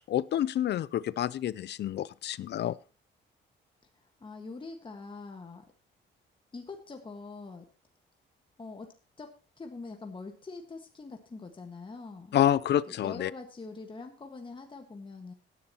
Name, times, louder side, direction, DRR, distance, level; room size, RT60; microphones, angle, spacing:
voice 1, 0.0-2.8 12.3-13.3, left 11 dB, 60° left, 21 dB, 0.5 m, -28 dB
voice 2, 3.9-5.6 6.5-7.7 8.6-12.3 12.9-15.3, left 3 dB, 25° left, 3 dB, 1.6 m, -44 dB
17.0 x 10.5 x 3.0 m, 0.34 s
cardioid pair, 90°, 20 cm